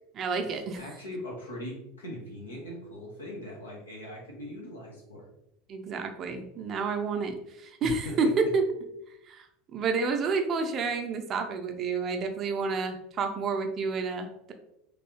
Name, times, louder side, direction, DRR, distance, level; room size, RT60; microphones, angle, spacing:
voice 1, 0.2-0.8 5.7-8.7 9.3-9.5 9.7-14.5, right 4 dB, 40° right, 5 dB, 0.5 m, -29 dB
voice 2, 0.8-5.2 7.8-8.3, equal, 85° left, -2 dB, 0.9 m, -40 dB
3.2 x 2.6 x 3.0 m, 0.83 s
figure-of-eight pair, 75°, 0 cm